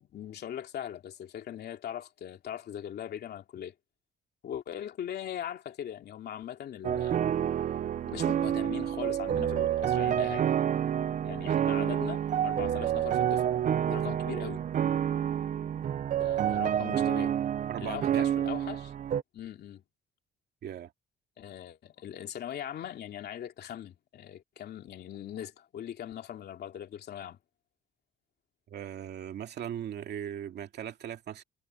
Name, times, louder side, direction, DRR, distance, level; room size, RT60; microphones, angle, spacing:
voice 1, 0.0-3.7 4.4-7.2 8.1-10.5 11.2-13.5 13.9-14.6 16.2-17.3 17.8-18.9 19.3-19.8 21.4-27.4, left 10 dB, 50° left, 2.9 m, -40 dB
sound 1, 6.8-19.2, right 10 dB, 40° right, 0.6 m, -28 dB
voice 2, 17.7-18.3 20.6-20.9 28.7-31.4, right 10 dB, 55° right, 2.4 m, -38 dB
cardioid pair, 175°, 21 cm